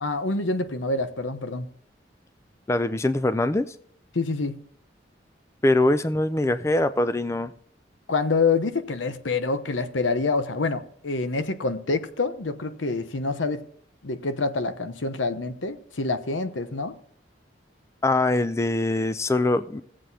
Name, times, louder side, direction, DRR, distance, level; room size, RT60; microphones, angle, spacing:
voice 1, 0.0-1.7 4.1-4.6 8.1-13.6 14.0-17.0, left 3 dB, 90° left, 0.9 m, -26 dB
voice 2, 2.7-3.8 5.6-7.5 18.0-19.8, left 2 dB, 15° left, 0.3 m, -23 dB
17.5 x 7.6 x 2.8 m
head